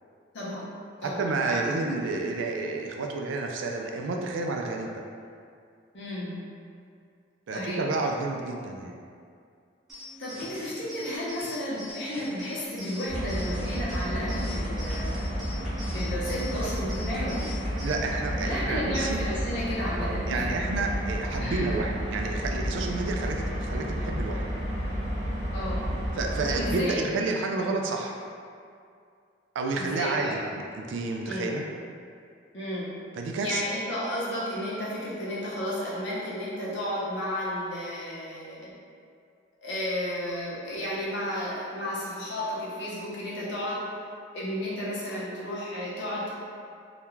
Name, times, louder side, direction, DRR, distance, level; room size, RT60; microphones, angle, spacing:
voice 1, 0.3-0.7 1.0-1.6 5.9-6.4 7.5-7.8 10.2-15.6 15.9-17.5 18.4-20.5 21.4-21.9 25.5-25.9 26.5-27.0 29.8-30.4 31.2-31.6 32.5-32.9 33.4-38.7 39.6-43.8 44.3-46.3, left 1 dB, 65° left, -7 dB, 0.7 m, -33 dB
voice 2, 1.0-5.0 7.5-9.0 17.8-19.2 20.0-24.4 26.1-28.2 29.6-30.4 30.7-31.6 33.1-33.6, right 3 dB, 75° right, 2 dB, 0.3 m, -30 dB
sound 1, 9.9-17.9, left 1 dB, ahead, 0.5 m, -43 dB
sound 2, 13.1-26.8, equal, 60° right, 0.7 m, -31 dB
2.3 x 2.1 x 3.0 m, 2.3 s
head